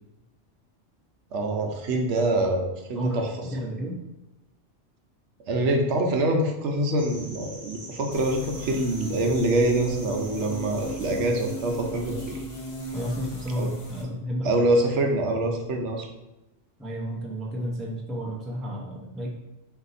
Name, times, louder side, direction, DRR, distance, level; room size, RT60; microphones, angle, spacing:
voice 1, 1.3-3.3 5.5-12.4 13.6-13.7 14.4-16.1, right 1 dB, 75° right, 3 dB, 1.0 m, -25 dB
voice 2, 3.5-4.0 12.9-14.5 16.8-19.3, equal, ahead, -3 dB, 0.4 m, -31 dB
sound 1, 7.0-11.9, right 1 dB, 45° right, 1.0 m, -44 dB
sound 2, 8.1-14.0, equal, 55° left, 1.1 m, -37 dB
4.2 x 2.7 x 4.0 m, 0.97 s
omnidirectional pair, 1.2 m